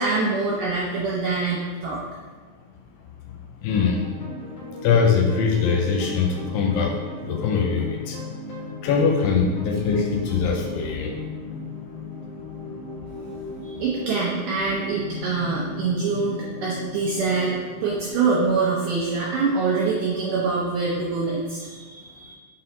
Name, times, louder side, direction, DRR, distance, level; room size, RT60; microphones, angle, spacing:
voice 1, 0.0-2.0 13.6-22.3, right 4 dB, 80° right, -5 dB, 1.9 m, -25 dB
voice 2, 3.6-4.0 4.8-6.9 7.2-8.2 8.8-11.1, left 5 dB, 80° left, 1 dB, 2.6 m, -22 dB
sound 1, 3.8-20.7, left 3 dB, 60° left, 1.9 m, -37 dB
6.1 x 4.3 x 3.9 m, 1.5 s
omnidirectional pair, 4.8 m